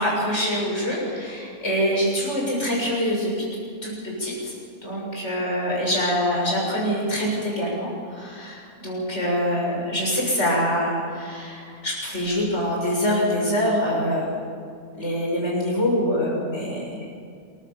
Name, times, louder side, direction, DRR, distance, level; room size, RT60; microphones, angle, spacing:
voice 1, 0.0-3.3 3.8-4.5 4.8-14.3 15.0-17.0, equal, 50° left, -3 dB, 7.3 m, -25 dB
26.5 x 15.0 x 7.3 m, 2.4 s
omnidirectional pair, 1.6 m